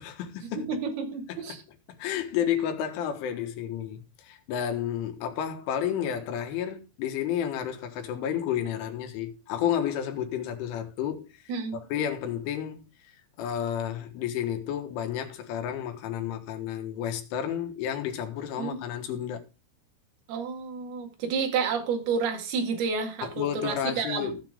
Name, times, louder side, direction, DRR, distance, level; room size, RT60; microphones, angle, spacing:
voice 1, 0.0-0.7 1.3-1.6 2.0-11.4 11.7-12.9 13.4-19.4 23.2-24.5, left 9 dB, 80° left, 3.9 m, -31 dB
voice 2, 0.6-1.6 11.5-11.8 18.6-18.8 20.3-24.4, right 5 dB, 60° right, 3.6 m, -30 dB
16.5 x 5.8 x 3.6 m
omnidirectional pair, 5.6 m